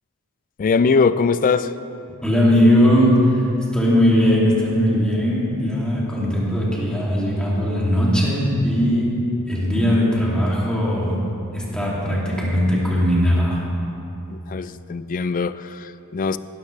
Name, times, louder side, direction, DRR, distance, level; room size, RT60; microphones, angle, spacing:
voice 1, 0.6-1.7 14.3-16.4, left 5 dB, 40° left, 14 dB, 0.3 m, -21 dB
voice 2, 2.2-9.2 9.5-11.2 11.5-13.6, equal, 5° left, -6 dB, 2.5 m, -19 dB
16.0 x 13.0 x 3.2 m, 2.9 s
head